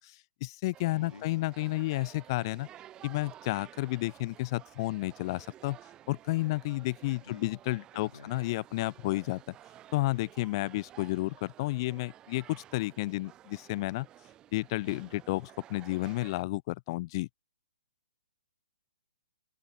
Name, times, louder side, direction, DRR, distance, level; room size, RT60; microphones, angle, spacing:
voice 1, 0.0-2.7 3.0-5.8 6.1-9.5 9.9-14.1 14.5-17.3, left 20 dB, 35° left, 0.3 m, -32 dB
sound 1, 0.7-16.4, right 12 dB, 20° right, 1.6 m, -53 dB
voice 2, 0.9-1.3 7.1-7.5 7.9-8.3, left 5 dB, 90° left, 2.1 m, -49 dB
hypercardioid pair, 140°, 4 cm